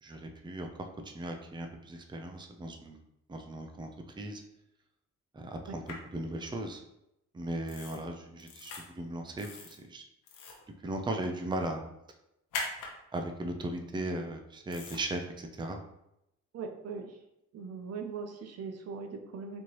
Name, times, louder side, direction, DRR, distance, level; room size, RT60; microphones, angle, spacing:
voice 1, 0.0-0.7 1.0-3.0 3.3-3.9 4.2-4.4 5.3-5.8 6.1-6.8 7.3-10.0 10.8-11.9 13.1-15.8, right 1 dB, 15° right, 5 dB, 0.5 m, -37 dB
sound 1, 5.9-6.0 7.7-8.0 8.4-8.8 9.4-9.8 10.2-10.6 12.5-12.9 14.7-15.0, left 3 dB, 90° left, 0.9 m, -39 dB
voice 2, 16.5-17.2 17.5-19.6, right 5 dB, 55° right, 5 dB, 0.7 m, -40 dB
4.3 x 3.0 x 3.0 m, 0.85 s
cardioid pair, 90°, 30 cm